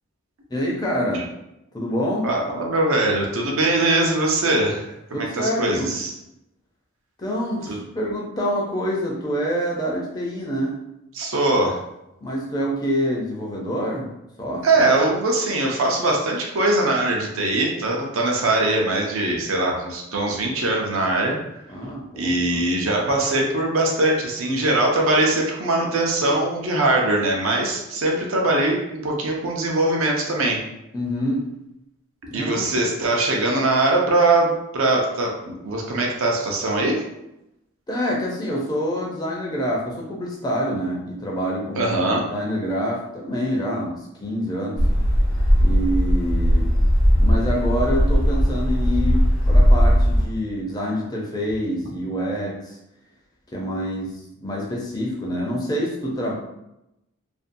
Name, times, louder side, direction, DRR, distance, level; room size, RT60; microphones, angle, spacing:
voice 1, 0.5-1.3 1.7-2.3 5.1-5.9 7.2-10.8 12.2-14.1 14.4-14.7 21.7-22.6 30.9-31.4 32.3-32.7 37.9-41.9 42.3-43.9 44.2-44.8 45.6-46.7 47.2-52.8 53.5-54.1 54.4-56.3, equal, 20° left, -3 dB, 0.4 m, -26 dB
voice 2, 2.2-6.1 7.6-7.8 11.1-11.8 14.6-21.4 22.1-30.6 32.3-37.0 41.8-42.2, right 2 dB, 75° right, 0 dB, 0.6 m, -21 dB
sound 1, 44.8-50.2, equal, 85° left, 0.7 m, -18 dB
2.5 x 2.2 x 2.5 m, 0.87 s
head